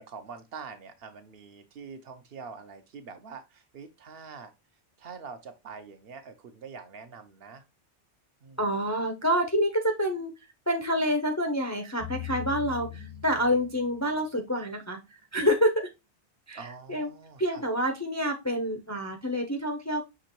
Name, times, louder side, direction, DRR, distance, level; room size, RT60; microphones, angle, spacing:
voice 1, 0.0-4.5 5.0-7.6 8.4-8.6 12.9-13.3 16.5-17.6, right 5 dB, 60° right, 8 dB, 0.8 m, -45 dB
voice 2, 8.6-10.3 10.7-15.0 15.3-15.7 16.5-17.1 17.4-20.0, equal, 20° left, 4 dB, 0.4 m, -27 dB
sound 1, 12.0-14.2, left 14 dB, 85° right, 1.5 m, -40 dB
6.2 x 2.9 x 2.9 m, 0.24 s
omnidirectional pair, 1.2 m